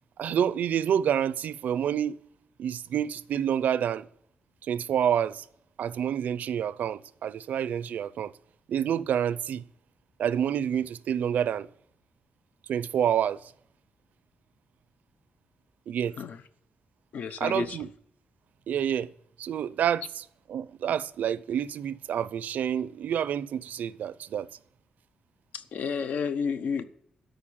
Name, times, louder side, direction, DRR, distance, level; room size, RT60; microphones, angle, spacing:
voice 1, 0.2-2.2 2.6-4.1 4.6-5.4 5.8-8.3 8.7-9.6 10.2-11.7 12.7-13.4 15.9-16.2 17.4-17.9 18.7-19.1 19.4-24.5, right 9 dB, 75° right, 0.5 m, -28 dB
voice 2, 17.1-17.8 25.5-26.8, left 6 dB, 65° left, 0.9 m, -31 dB
13.0 x 5.3 x 8.8 m
wide cardioid pair, 170°, 3 cm